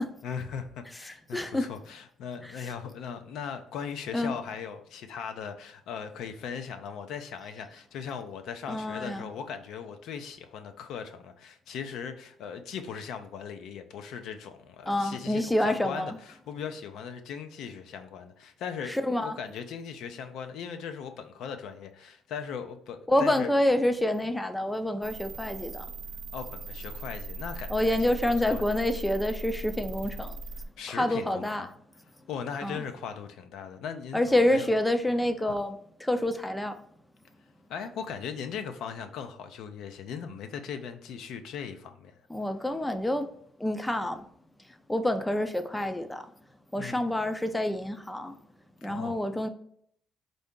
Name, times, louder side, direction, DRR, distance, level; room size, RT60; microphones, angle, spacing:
voice 1, 0.2-23.5 26.3-28.1 28.5-28.6 30.8-31.7 32.3-34.7 37.7-42.1 46.8-47.0 48.9-49.2, left 7 dB, 75° left, 0.5 m, -39 dB
voice 2, 1.3-1.7 2.4-2.5 4.1-4.3 8.7-9.3 14.9-16.2 18.9-19.3 23.1-25.8 27.7-30.4 30.9-31.6 32.6-32.8 34.1-36.8 42.3-43.3 43.6-44.2 44.9-46.2 46.7-48.3 48.8-49.5, left 1 dB, 5° left, 0.4 m, -27 dB
sound 1, 25.0-30.7, right 2 dB, 65° right, 0.6 m, -39 dB
4.5 x 2.6 x 3.6 m
cardioid pair, 120°, 0 cm